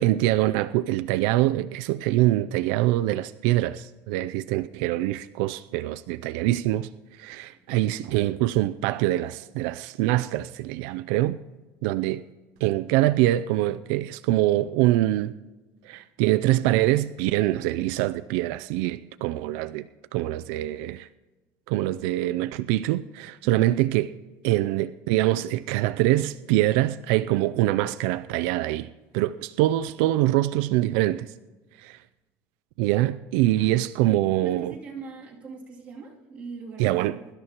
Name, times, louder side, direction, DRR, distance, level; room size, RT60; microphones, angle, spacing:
voice 1, 0.0-6.9 7.2-11.4 11.8-12.2 12.6-15.4 15.8-19.8 20.1-21.1 21.7-24.1 24.4-28.9 29.1-31.3 31.8-32.0 32.8-34.7 36.8-37.2, right 15 dB, 85° right, 0.4 m, -24 dB
voice 2, 7.5-8.1 33.6-33.7 34.0-37.3, right 4 dB, 20° right, 2.6 m, -42 dB
23.0 x 12.5 x 2.9 m
cardioid pair, 165°, 6 cm